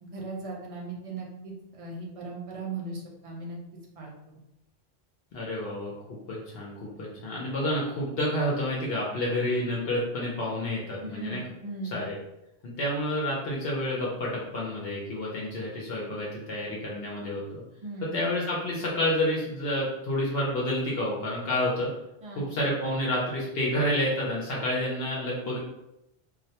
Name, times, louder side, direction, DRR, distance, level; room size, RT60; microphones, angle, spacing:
voice 1, 0.0-3.6 4.0-4.4 11.0-12.0 17.8-18.2 22.2-22.6, right 3 dB, 55° right, -2 dB, 0.3 m, -38 dB
voice 2, 5.3-11.4 11.9-12.2 12.6-17.6 18.1-21.9 22.4-25.6, left 1 dB, 70° left, -4 dB, 0.8 m, -29 dB
2.2 x 2.1 x 2.7 m, 0.88 s
omnidirectional pair, 1.1 m